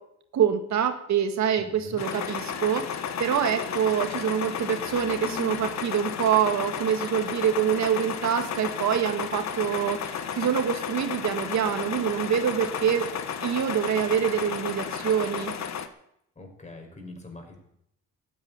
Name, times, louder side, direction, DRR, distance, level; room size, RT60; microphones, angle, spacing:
voice 1, 0.3-13.1 13.4-15.5, right 8 dB, 65° right, 7 dB, 2.0 m, -25 dB
voice 2, 1.6-2.0 16.4-17.6, left 2 dB, 25° left, 3 dB, 5.5 m, -43 dB
sound 1, 2.0-15.9, left 7 dB, 60° left, 1.5 m, -33 dB
14.0 x 9.8 x 9.7 m, 0.75 s
cardioid pair, 90°, 30 cm